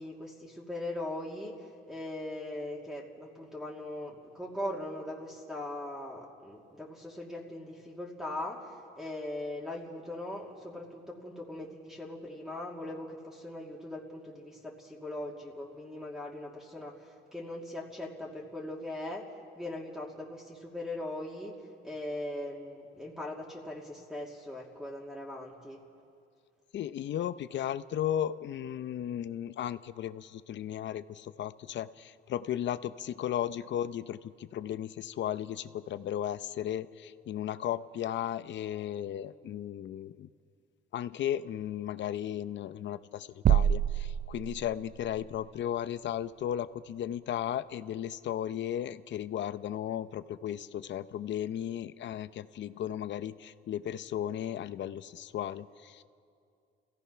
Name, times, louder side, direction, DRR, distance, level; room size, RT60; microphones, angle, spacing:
voice 1, 0.0-19.3 19.6-21.6 21.8-25.8, left 1 dB, 5° right, -2 dB, 2.7 m, -40 dB
voice 2, 26.7-40.3 40.9-56.0, left 10 dB, 65° left, 13 dB, 0.7 m, -35 dB
sound 1, 43.5-45.1, right 10 dB, 50° right, 0.5 m, -26 dB
29.0 x 16.0 x 5.7 m, 2.4 s
cardioid pair, 90°, 20 cm